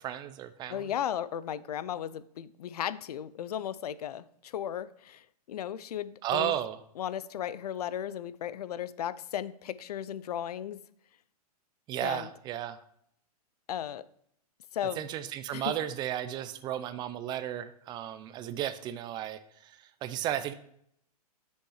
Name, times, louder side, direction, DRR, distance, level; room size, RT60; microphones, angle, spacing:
voice 1, 0.0-0.9 6.2-6.8 11.9-12.8 15.0-20.5, right 11 dB, 20° right, 13 dB, 0.4 m, -34 dB
voice 2, 0.7-6.5 7.0-10.8 12.0-12.3 13.7-14.0 14.7-15.0 15.5-15.7, left 10 dB, 75° left, 17 dB, 0.5 m, -35 dB
6.5 x 5.4 x 4.8 m, 0.69 s
hypercardioid pair, 130°, 20 cm